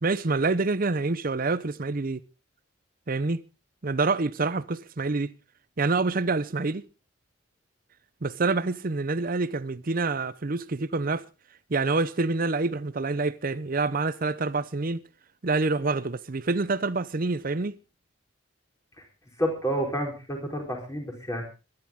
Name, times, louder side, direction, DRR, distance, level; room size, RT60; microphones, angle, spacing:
voice 1, 0.0-2.2 3.1-3.4 3.8-5.3 5.8-6.8 8.2-11.2 11.7-15.0 15.4-17.8, right 3 dB, 45° right, 0.7 m, -27 dB
voice 2, 19.4-21.4, equal, 15° left, 4.2 m, -29 dB
23.0 x 11.0 x 3.6 m
head